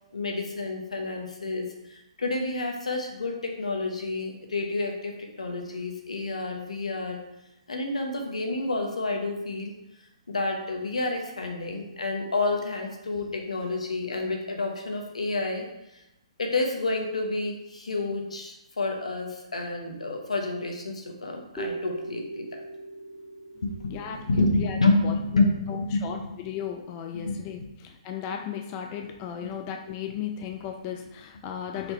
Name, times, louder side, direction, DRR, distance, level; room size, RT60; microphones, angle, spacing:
voice 1, 0.1-7.2 7.7-9.7 10.3-15.7 16.4-22.6 23.6-26.3 27.1-27.7, left 2 dB, 90° left, 3 dB, 0.8 m, -29 dB
sound 1, 21.6-25.3, right 2 dB, 10° left, 1.1 m, -40 dB
voice 2, 23.9-24.8 25.0-25.2 25.7-31.9, left 8 dB, 30° left, 4 dB, 0.4 m, -36 dB
4.1 x 2.6 x 4.2 m, 0.87 s
hypercardioid pair, 135°, 3 cm